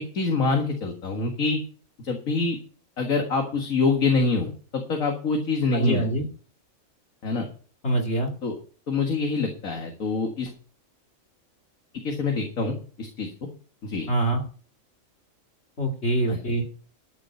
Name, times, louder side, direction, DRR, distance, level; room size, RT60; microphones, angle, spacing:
voice 1, 0.0-1.6 2.0-2.6 3.0-6.1 7.2-7.5 8.4-8.5 8.9-10.5 12.0-13.3 13.8-14.1 16.3-16.4, left 4 dB, 75° left, 2 dB, 2.3 m, -25 dB
voice 2, 5.7-6.2 7.8-8.3 14.1-14.4 15.8-16.6, right 1 dB, 50° left, 1 dB, 2.5 m, -24 dB
13.5 x 7.4 x 5.9 m, 0.40 s
omnidirectional pair, 1.4 m